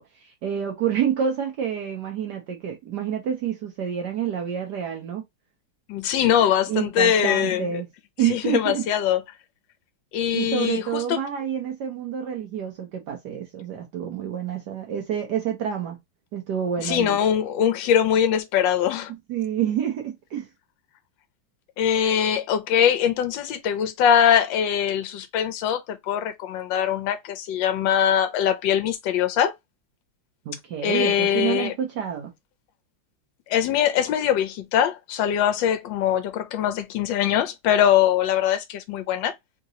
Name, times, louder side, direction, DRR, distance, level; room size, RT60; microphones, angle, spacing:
voice 1, 0.0-5.2 6.7-7.9 8.2-8.8 10.3-16.0 16.3-17.2 19.3-20.5 30.4-32.3, right 9 dB, 65° right, 1.2 m, -28 dB
voice 2, 5.9-7.6 8.3-9.2 10.1-11.2 16.8-19.1 21.8-29.5 30.8-31.7 33.5-39.3, left 9 dB, 75° left, 1.3 m, -22 dB
3.8 x 2.9 x 2.7 m
omnidirectional pair, 2.2 m